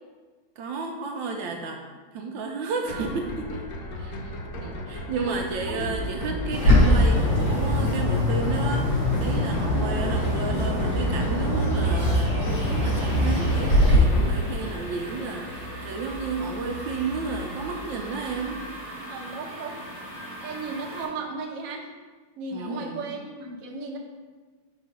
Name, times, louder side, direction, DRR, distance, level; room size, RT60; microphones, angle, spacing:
voice 1, 0.6-1.8 2.1-3.7 3.9-4.2 4.6-18.6 22.5-23.1, right 4 dB, 75° right, 2 dB, 1.3 m, -32 dB
voice 2, 2.8-3.2 4.0-4.7 5.2-5.4 5.7-6.0 9.7-10.1 19.1-19.8 20.4-21.8 22.4-24.0, right 3 dB, 55° right, 0 dB, 1.1 m, -36 dB
sound 1, 2.9-18.5, left 1 dB, 60° left, 1.1 m, -36 dB
Bird, 6.5-14.0, left 1 dB, 75° left, 3.1 m, -22 dB
sound 2, 12.5-21.1, right 1 dB, 20° left, 1.3 m, -40 dB
4.9 x 4.7 x 5.2 m, 1.4 s
omnidirectional pair, 2.2 m